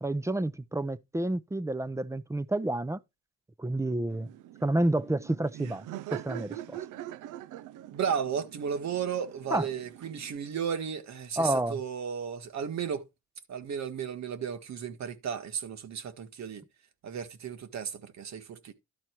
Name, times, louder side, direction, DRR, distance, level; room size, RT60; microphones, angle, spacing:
voice 1, 0.0-3.0 3.6-4.3 4.6-5.8 6.1-6.8 9.5-9.7 11.4-11.8, right 1 dB, 10° right, 0.6 m, -29 dB
Laughter, 4.1-10.4, right 13 dB, 80° right, 0.6 m, -44 dB
voice 2, 7.9-13.0 13.5-16.6 17.0-18.7, right 7 dB, 65° right, 1.6 m, -34 dB
12.0 x 4.3 x 4.5 m
cardioid pair, 90°, 30 cm